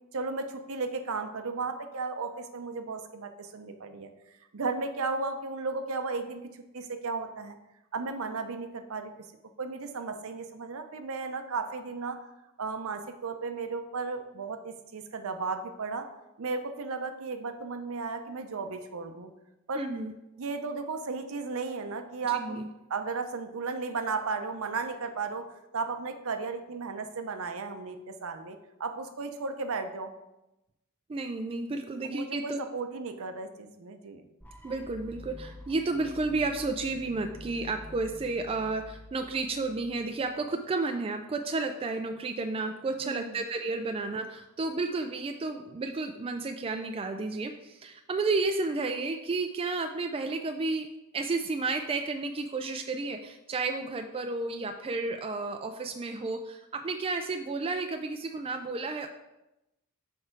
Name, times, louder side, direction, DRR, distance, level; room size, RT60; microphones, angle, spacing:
voice 1, 0.1-7.6 7.9-9.1 9.6-12.2 12.6-16.1 16.4-19.3 19.7-19.9 20.4-22.6 22.9-25.4 25.7-30.1 32.0-34.2 43.0-43.4, right 4 dB, 65° right, 8 dB, 0.6 m, -35 dB
voice 2, 19.8-20.1 22.3-22.7 31.1-32.6 34.6-50.9 51.1-59.1, right 3 dB, 25° right, 6 dB, 0.3 m, -32 dB
sound 1, 34.4-40.3, left 1 dB, 10° left, 0.7 m, -48 dB
6.6 x 4.6 x 4.5 m, 0.95 s
head